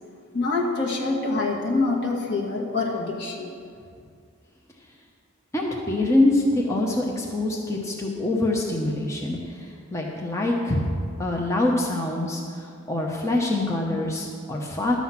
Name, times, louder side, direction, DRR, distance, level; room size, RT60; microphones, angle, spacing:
voice 1, 0.3-3.5, left 3 dB, 55° left, -2 dB, 1.8 m, -25 dB
voice 2, 5.5-15.0, left 1 dB, 15° left, -2 dB, 0.9 m, -25 dB
12.5 x 7.8 x 5.8 m, 2.3 s
head